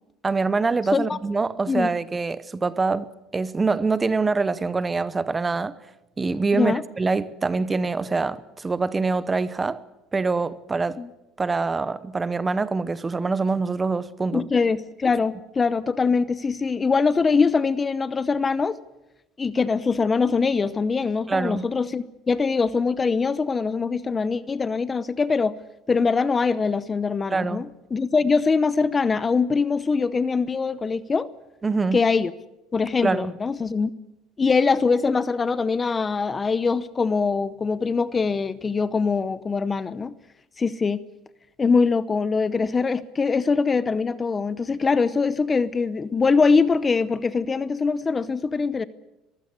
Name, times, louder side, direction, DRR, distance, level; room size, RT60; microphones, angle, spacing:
voice 1, 0.2-5.7 6.2-9.8 10.1-11.0 11.4-14.5 21.3-21.7 27.3-27.7 31.6-32.0 33.0-33.3, right 4 dB, 15° right, 0.8 m, -25 dB
voice 2, 14.3-18.8 19.4-25.6 25.9-27.7 27.9-31.3 31.9-32.3 32.7-33.9 34.4-40.1 40.6-41.0 41.6-48.9, left 4 dB, 20° left, 0.7 m, -23 dB
23.0 x 15.5 x 9.6 m
cardioid pair, 140°, 0 cm